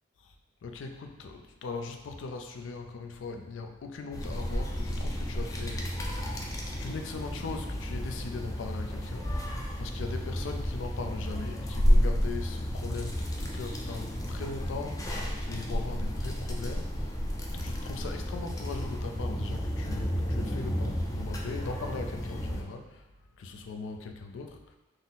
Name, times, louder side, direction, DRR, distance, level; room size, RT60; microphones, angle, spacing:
voice 1, 0.6-6.0 6.6-17.3 17.5-23.1 23.4-24.8, left 4 dB, 90° left, 4 dB, 0.4 m, -40 dB
sound 1, 4.1-22.6, equal, 20° left, 0.3 m, -31 dB
3.8 x 2.0 x 4.0 m, 1.1 s
head